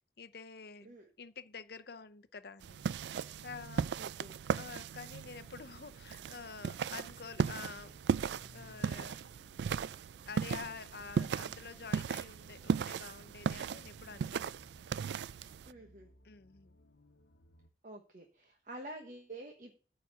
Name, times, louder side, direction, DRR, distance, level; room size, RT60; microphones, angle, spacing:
voice 1, 0.2-2.8 3.4-3.9 4.6-8.0 8.5-9.3 10.3-14.5 16.2-16.8, left 5 dB, 60° left, 0.6 m, -48 dB
sound 1, 2.6-15.7, right 6 dB, 75° right, 0.3 m, -37 dB
voice 2, 3.9-4.4 15.6-16.1 17.8-19.7, right 1 dB, 45° right, 1.1 m, -48 dB
sound 2, 6.9-17.7, left 2 dB, 75° left, 1.0 m, -63 dB
9.3 x 4.1 x 7.2 m
head